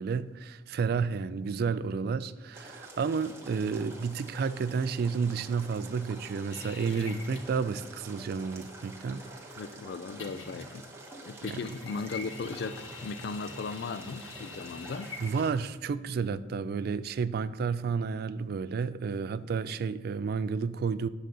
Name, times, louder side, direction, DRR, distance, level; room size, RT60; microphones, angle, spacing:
voice 1, 0.0-9.2 11.5-11.6 15.2-21.1, right 5 dB, 55° right, 0.3 m, -31 dB
sound 1, 2.5-15.5, right 2 dB, 15° right, 1.0 m, -48 dB
sound 2, 6.5-7.6 10.2-10.9 11.5-15.7, left 3 dB, 90° left, 0.9 m, -45 dB
voice 2, 9.6-10.8 11.3-15.1, left 4 dB, 60° left, 0.4 m, -37 dB
7.6 x 3.8 x 6.6 m
head